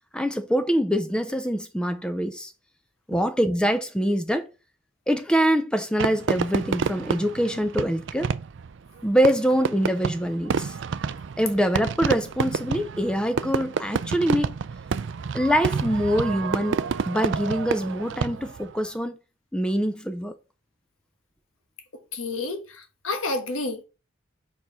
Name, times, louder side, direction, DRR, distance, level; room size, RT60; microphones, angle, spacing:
voice 1, 0.1-2.5 3.1-4.5 5.1-8.3 9.0-10.7 11.4-14.5 15.3-16.8 17.1-19.2 19.5-20.3, equal, 5° left, 0.5 m, -24 dB
Fireworks, 6.0-18.7, right 5 dB, 60° right, 0.4 m, -29 dB
voice 2, 22.1-23.8, left 3 dB, 80° left, 1.4 m, -30 dB
4.7 x 4.7 x 5.5 m
head